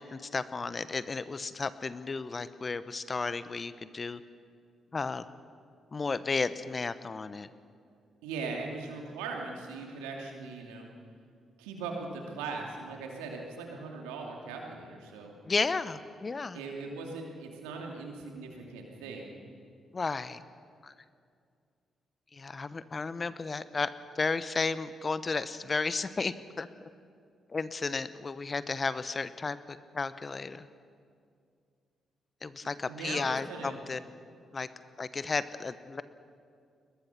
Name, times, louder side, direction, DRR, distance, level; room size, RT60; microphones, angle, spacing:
voice 1, 0.0-4.2 4.9-5.2 5.9-7.5 15.4-16.6 19.9-20.4 20.8-20.9 22.3-23.9 24.1-26.7 27.5-30.7 32.4-34.0 34.5-34.7 35.0-36.0, left 4 dB, 40° left, 14 dB, 1.0 m, -33 dB
voice 2, 8.2-10.9 11.6-15.3 16.5-19.3 32.6-33.8, right 4 dB, 80° right, 1 dB, 2.7 m, -40 dB
22.5 x 20.0 x 6.0 m, 2.3 s
hypercardioid pair, 40°, 0 cm